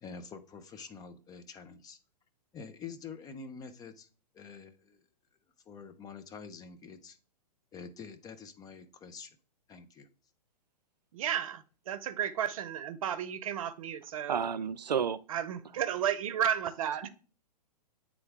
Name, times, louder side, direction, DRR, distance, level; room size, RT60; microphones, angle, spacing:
voice 1, 0.0-2.0 2.5-4.1 4.3-5.0 5.7-7.2 7.7-9.4 9.7-10.1, left 5 dB, 20° left, 0.7 m, -46 dB
voice 2, 11.1-14.5 15.3-17.1, right 9 dB, 55° right, 0.7 m, -33 dB
voice 3, 14.3-15.2, right 7 dB, 85° right, 0.5 m, -31 dB
9.0 x 3.7 x 3.6 m
figure-of-eight pair, 115°, 21 cm